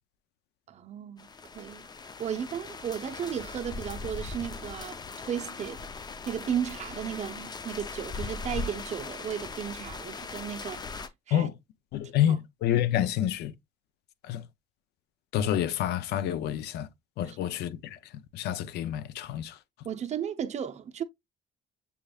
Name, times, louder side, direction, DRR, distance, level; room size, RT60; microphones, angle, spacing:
voice 1, 0.7-1.3 1.5-1.9 2.2-5.8 6.3-10.8 11.3-11.5 12.2-12.4 17.3-17.5 19.8-21.0, right 8 dB, 40° right, 0.7 m, -34 dB
sound 1, 1.2-11.1, left 4 dB, 25° left, 0.5 m, -39 dB
voice 2, 11.9-13.5 14.3-14.4 15.3-16.9 17.2-18.0 18.3-19.6, left 11 dB, 75° left, 0.6 m, -28 dB
6.9 x 3.2 x 2.3 m
cardioid pair, 110°, 17 cm